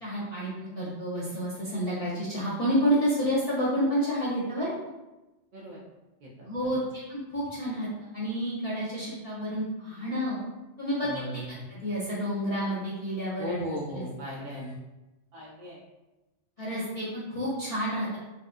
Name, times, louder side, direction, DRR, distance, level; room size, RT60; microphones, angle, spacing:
voice 1, 0.0-4.7 6.4-6.8 7.1-10.4 10.8-11.4 11.7-13.5 13.9-14.0 16.6-18.2, equal, 35° left, -10 dB, 0.9 m, -29 dB
voice 2, 5.5-5.8 6.2-6.5 11.0-11.6 13.4-14.7 15.3-15.8, equal, 55° right, -4 dB, 0.6 m, -37 dB
4.3 x 2.4 x 2.5 m, 1.1 s
omnidirectional pair, 1.3 m